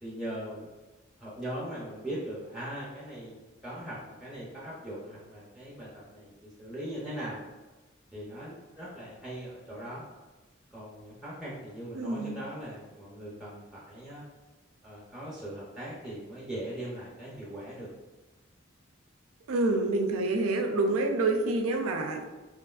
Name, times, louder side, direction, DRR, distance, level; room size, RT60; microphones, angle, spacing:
voice 1, 0.0-0.7 1.2-7.4 8.1-10.1 10.7-14.2 14.8-17.9, right 1 dB, ahead, -6 dB, 0.5 m, -40 dB
voice 2, 11.9-12.4 19.5-22.3, right 2 dB, 90° right, 3 dB, 0.4 m, -27 dB
2.9 x 2.5 x 2.3 m, 1.2 s
head